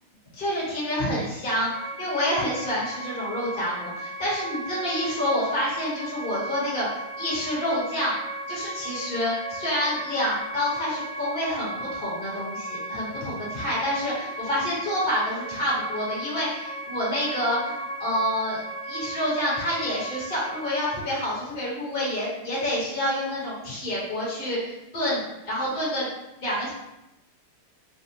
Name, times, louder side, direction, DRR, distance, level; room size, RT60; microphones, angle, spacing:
voice 1, 0.3-1.7 2.0-6.9 7.2-8.1 8.5-18.6 18.9-26.1 26.4-26.7, equal, 30° left, -7 dB, 1.1 m, -28 dB
sound 1, 1.7-21.0, right 1 dB, 60° right, 2.0 m, -36 dB
4.1 x 2.2 x 2.8 m, 0.90 s
omnidirectional pair, 2.4 m